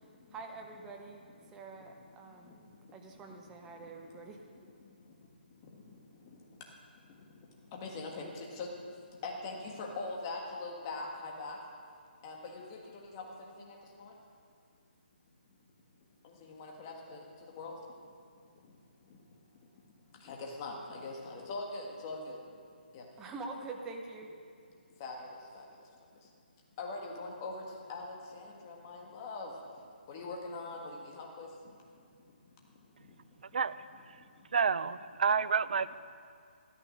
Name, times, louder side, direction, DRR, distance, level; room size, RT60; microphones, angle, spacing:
voice 1, 0.3-1.2 1.5-2.6 2.9-4.4 23.2-24.3, right 3 dB, 10° right, 3 dB, 0.7 m, -45 dB
voice 2, 7.7-8.3 8.6-8.7 9.2-11.6 12.2-12.8 13.1-13.2 13.7-14.1 16.4-17.2 17.6-17.7 20.2-22.4 22.9-23.0 25.0-25.2 25.5-25.6 26.8-27.6 27.9-29.5 30.1-31.5, left 3 dB, 20° left, 0 dB, 1.5 m, -41 dB
voice 3, 34.5-36.0, right 6 dB, 50° right, 16 dB, 0.4 m, -29 dB
12.5 x 12.5 x 6.2 m, 2.3 s
hypercardioid pair, 170°, 6 cm